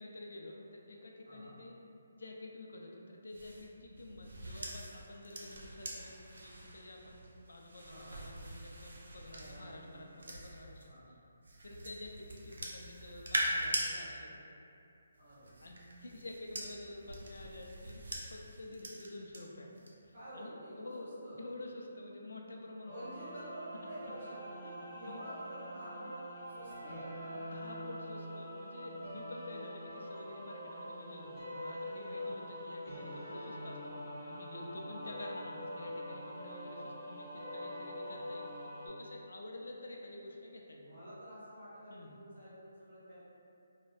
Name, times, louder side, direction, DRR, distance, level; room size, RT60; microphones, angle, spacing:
voice 1, 0.0-1.8 2.1-10.9 11.6-14.5 15.6-18.0 18.3-19.7 20.1-23.0 24.6-24.7 25.1-25.2 27.3-40.9 41.9-42.1, left 2 dB, 80° left, 0 dB, 0.3 m, -49 dB
voice 2, 1.2-1.6 7.8-8.2 9.3-10.3 10.8-11.1 15.2-15.5 20.1-21.4 22.9-27.0 32.1-32.4 34.9-35.1 40.9-43.2, right 1 dB, 50° right, -14 dB, 1.0 m, -49 dB
sound 1, 3.3-10.9 11.4-13.9 15.1-19.4 19.8-20.1, right 1 dB, 80° right, 0.4 m, -42 dB
sound 2, 22.8-38.9, equal, 10° left, 0.7 m, -44 dB
2.5 x 2.1 x 2.4 m, 2.6 s
hypercardioid pair, 175°, 0 cm